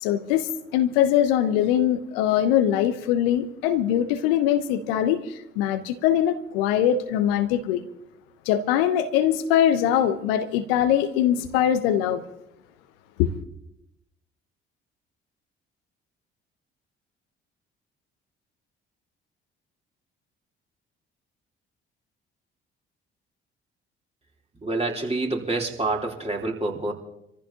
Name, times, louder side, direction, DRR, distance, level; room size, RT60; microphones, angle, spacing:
voice 1, 0.0-7.8 8.5-12.2 13.2-13.3, left 10 dB, 75° left, 0.9 m, -22 dB
voice 2, 24.6-26.9, right 2 dB, 20° right, 3.4 m, -27 dB
26.5 x 14.5 x 2.9 m
figure-of-eight pair, 45°, 29 cm